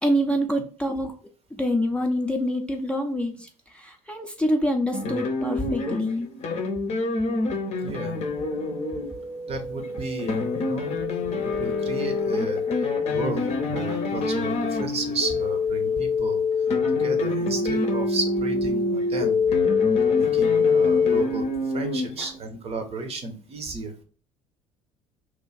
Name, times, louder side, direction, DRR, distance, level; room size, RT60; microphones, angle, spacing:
voice 1, 0.0-1.1 1.6-6.3 22.2-22.3, equal, 5° left, 2 dB, 0.6 m, -26 dB
sound 1, 4.9-15.5 16.5-22.4, left 2 dB, 40° left, 0.7 m, -29 dB
voice 2, 7.8-8.2 9.5-12.6 13.1-16.4 16.9-19.4 20.1-24.0, right 3 dB, 35° right, 6 dB, 0.8 m, -33 dB
sound 2, 8.0-21.2, left 5 dB, 85° right, 1.4 m, -26 dB
3.0 x 2.4 x 3.9 m, 0.40 s
figure-of-eight pair, 60°, 17 cm